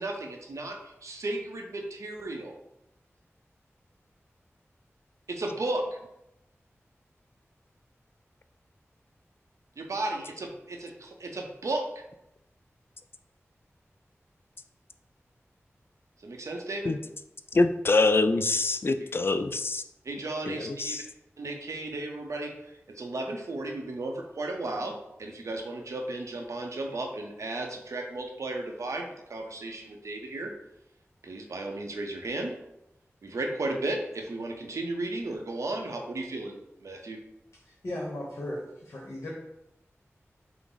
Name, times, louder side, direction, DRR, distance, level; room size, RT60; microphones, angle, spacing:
voice 1, 0.0-2.6 5.3-5.9 9.8-11.9 16.2-17.0 19.0-19.3 20.0-21.0 21.4-30.5 31.2-32.5 33.2-37.2, right 2 dB, 90° right, 2 dB, 0.7 m, -34 dB
voice 2, 17.5-19.8 20.5-21.0, left 3 dB, 50° left, 9 dB, 0.3 m, -25 dB
voice 3, 37.7-39.3, left 1 dB, 65° left, -3 dB, 1.0 m, -36 dB
5.8 x 2.0 x 3.9 m, 0.84 s
wide cardioid pair, 55°, 5 cm